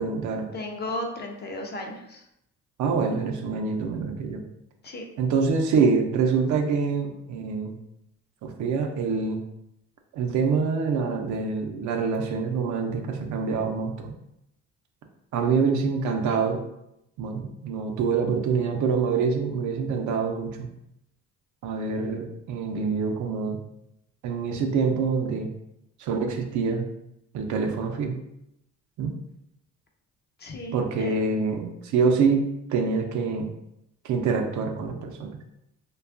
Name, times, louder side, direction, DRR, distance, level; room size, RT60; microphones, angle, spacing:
voice 1, 0.0-0.5 2.8-4.4 5.2-7.8 8.4-9.4 10.1-14.1 15.3-16.6 17.2-20.7 21.6-23.6 24.2-25.5 26.0-26.8 27.3-28.2 29.0-29.1 30.7-32.4 32.7-33.5 34.0-35.4, right 5 dB, 70° right, 4 dB, 0.5 m, -25 dB
voice 2, 0.5-2.2 4.8-5.0 30.4-31.3, left 1 dB, 35° left, 1 dB, 0.5 m, -35 dB
2.6 x 2.3 x 2.4 m, 0.82 s
cardioid pair, 90°, 30 cm